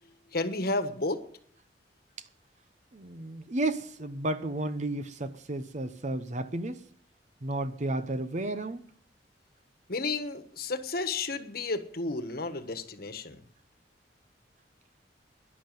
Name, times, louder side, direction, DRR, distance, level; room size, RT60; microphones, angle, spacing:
voice 1, 0.3-1.2 9.9-13.4, left 3 dB, 60° left, 1.4 m, -32 dB
voice 2, 2.9-6.9 7.4-8.9, right 2 dB, 45° right, 0.9 m, -32 dB
12.5 x 11.0 x 9.2 m
head